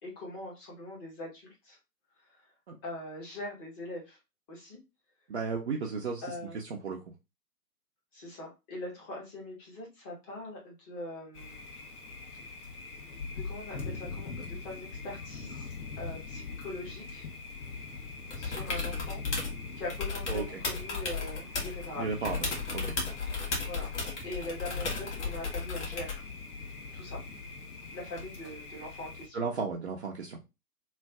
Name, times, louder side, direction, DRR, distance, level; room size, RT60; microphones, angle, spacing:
voice 1, 0.0-1.8 2.2-2.5 2.8-4.2 4.5-4.8 6.2-6.6 8.1-11.6 13.3-17.3 18.4-19.2 19.8-22.4 23.6-23.9 24.2-26.2 26.9-27.2 27.9-29.4, left 1 dB, 15° left, -2 dB, 0.9 m, -42 dB
voice 2, 5.3-6.2 6.5-7.0 20.3-20.6 22.0-22.4 22.7-22.8 29.3-30.4, right 4 dB, 45° right, -1 dB, 0.6 m, -34 dB
Thunder, 11.3-29.3, left 4 dB, 65° left, 1.4 m, -42 dB
sound 1, 18.3-19.6 19.9-21.9 22.2-26.3 28.2-28.3, left 4 dB, 45° left, 1.5 m, -35 dB
3.2 x 2.6 x 3.4 m, 0.25 s
figure-of-eight pair, 135°, 47 cm